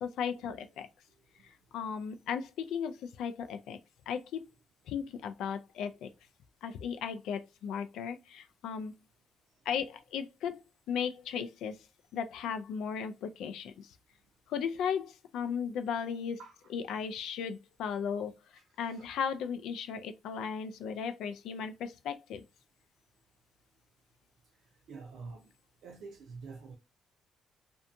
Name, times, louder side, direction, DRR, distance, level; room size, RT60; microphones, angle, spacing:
voice 1, 0.0-0.9 1.4-3.8 4.1-4.4 4.9-6.1 6.6-9.0 9.7-10.6 10.9-11.9 12.1-13.9 14.5-16.4 16.7-18.3 18.8-22.4, left 7 dB, 85° left, 0.3 m, -36 dB
voice 2, 16.4-16.7 18.5-19.1 21.6-21.7 24.9-25.5 25.8-26.7, right 4 dB, 75° right, 0.6 m, -47 dB
2.6 x 2.2 x 2.5 m
cardioid pair, 90°, 0 cm